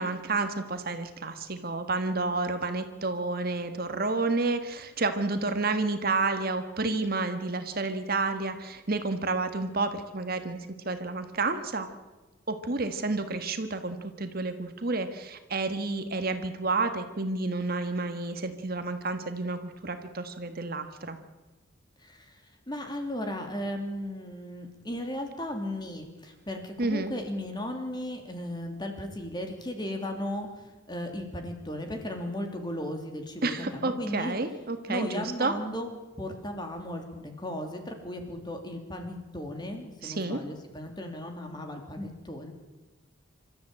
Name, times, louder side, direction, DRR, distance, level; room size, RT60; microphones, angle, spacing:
voice 1, 0.0-10.6 10.8-11.9 12.5-21.2 26.8-27.1 33.4-35.5 40.0-40.4, right 3 dB, 45° right, 8 dB, 1.6 m, -30 dB
voice 2, 22.0-34.3 34.9-35.9 36.2-42.5, left 1 dB, 20° left, 4 dB, 3.0 m, -36 dB
27.0 x 13.5 x 8.9 m, 1.2 s
head